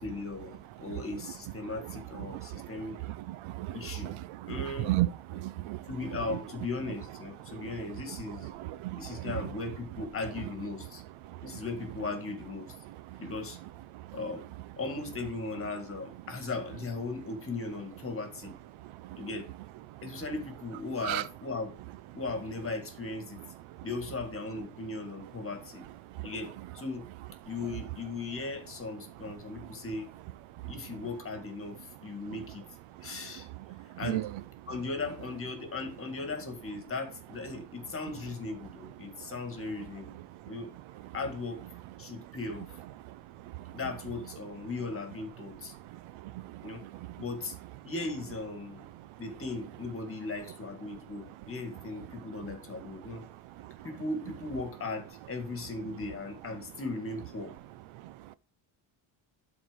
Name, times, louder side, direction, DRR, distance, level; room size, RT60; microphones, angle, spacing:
voice 1, 0.0-3.0 3.7-4.2 4.5-4.9 5.3-5.4 5.9-8.5 8.9-11.0 11.4-12.7 13.2-13.6 14.1-14.4 14.8-18.5 19.2-19.5 20.0-21.7 22.1-23.4 23.8-25.8 26.2-27.1 27.5-30.1 30.7-32.6 33.0-33.5 34.0-34.3 34.7-40.2 40.5-40.7 41.1-41.6 42.0-42.7 43.7-45.7 46.6-46.8 47.2-47.6 47.8-48.8 49.2-53.2 53.8-57.5, left 3 dB, 30° left, 2.0 m, -37 dB
voice 2, 2.3-2.7 3.3-3.8 4.0-4.1 4.6-5.8 8.7-9.3 21.0-21.2 34.0-34.3, right 16 dB, 85° right, 0.7 m, -32 dB
12.0 x 4.2 x 5.1 m
cardioid pair, 150°, 47 cm